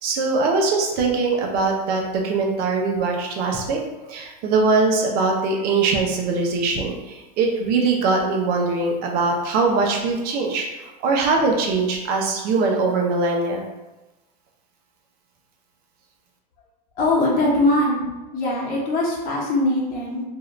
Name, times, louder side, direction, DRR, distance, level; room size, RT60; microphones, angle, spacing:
voice 1, 0.0-3.8 4.1-10.7 11.0-13.6, right 3 dB, 45° right, 1 dB, 0.7 m, -21 dB
voice 2, 17.0-18.0 18.3-20.2, left 1 dB, 40° left, -5 dB, 1.2 m, -21 dB
2.7 x 2.4 x 3.1 m, 1.1 s
supercardioid pair, 120°, 21 cm